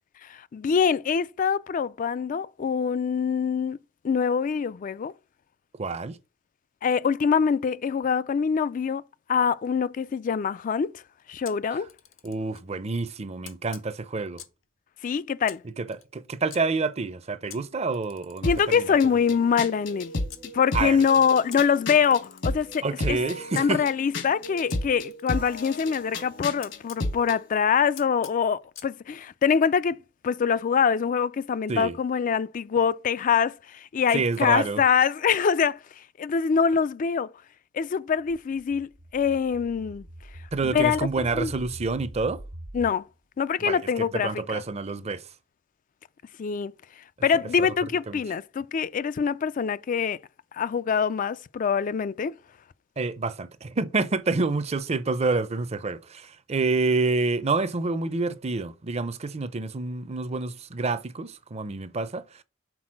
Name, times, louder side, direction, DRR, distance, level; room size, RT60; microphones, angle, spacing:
voice 1, 0.3-3.8 4.0-5.1 6.8-9.0 9.3-10.9 11.3-11.9 15.0-15.6 18.4-20.1 20.5-23.2 23.6-30.0 30.2-35.8 36.2-37.3 37.7-40.1 40.6-41.0 41.3-41.5 42.7-43.0 43.4-44.6 46.4-46.7 47.2-50.2 50.5-52.3, left 6 dB, 40° left, 0.3 m, -24 dB
voice 2, 5.8-6.2 12.2-14.4 15.8-19.0 20.7-21.0 22.8-23.8 31.7-32.0 34.1-34.8 40.5-42.4 43.6-45.3 47.6-47.7 48.1-48.2 53.0-62.4, right 3 dB, 35° right, 0.5 m, -28 dB
Camera, 11.4-12.7 13.4-14.7 15.4-16.6 17.5-20.5 21.5-23.7 24.7-27.1 28.0-28.9, left 10 dB, 85° left, 1.1 m, -48 dB
sound 1, 18.4-27.4, left 2 dB, 65° left, 1.3 m, -33 dB
sound 2, 38.2-42.9, right 1 dB, 75° right, 1.4 m, -43 dB
6.1 x 3.9 x 6.2 m
head